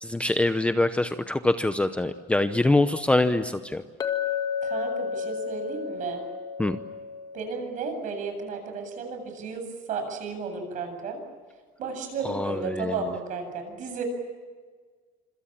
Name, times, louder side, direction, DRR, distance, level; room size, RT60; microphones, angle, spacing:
voice 1, 0.0-3.8 6.6-6.8 12.2-13.0, left 2 dB, 5° left, 9 dB, 0.8 m, -24 dB
Chink clink, 4.0-8.2, left 6 dB, 20° left, 1.9 m, -32 dB
voice 2, 4.6-6.2 7.3-11.2 11.8-14.0, right 5 dB, 45° right, 6 dB, 8.0 m, -33 dB
26.5 x 26.0 x 7.5 m, 1.5 s
cardioid pair, 145°, 17 cm